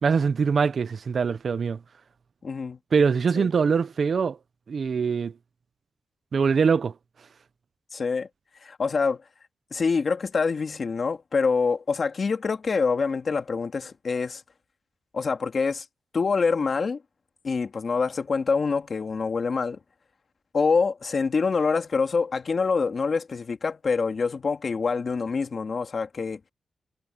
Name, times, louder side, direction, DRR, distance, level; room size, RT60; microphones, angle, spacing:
voice 1, 0.0-1.8 2.9-4.4 4.7-5.3 6.3-6.9, right 5 dB, 55° right, 0.7 m, -23 dB
voice 2, 2.4-2.8 3.4-3.5 7.9-8.3 8.6-9.2 9.7-14.4 15.1-15.8 16.1-17.0 17.4-19.8 20.5-26.4, left 4 dB, 50° left, 2.0 m, -25 dB
cardioid pair, 100°, 0 cm